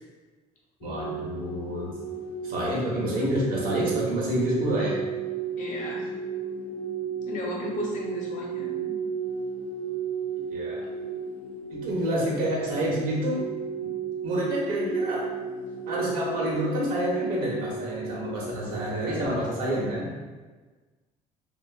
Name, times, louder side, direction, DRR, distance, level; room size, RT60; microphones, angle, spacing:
sound 1, 0.8-19.9, right 5 dB, 85° left, 0.4 m, -34 dB
voice 1, 0.8-1.9 2.4-5.0 10.5-10.8 11.7-13.4 14.2-15.2 15.9-20.1, equal, 70° right, -4 dB, 1.1 m, -28 dB
voice 2, 5.6-6.1 7.3-9.0, left 1 dB, 60° left, -2 dB, 0.9 m, -34 dB
2.9 x 2.7 x 2.4 m, 1.3 s
supercardioid pair, 80°, 15 cm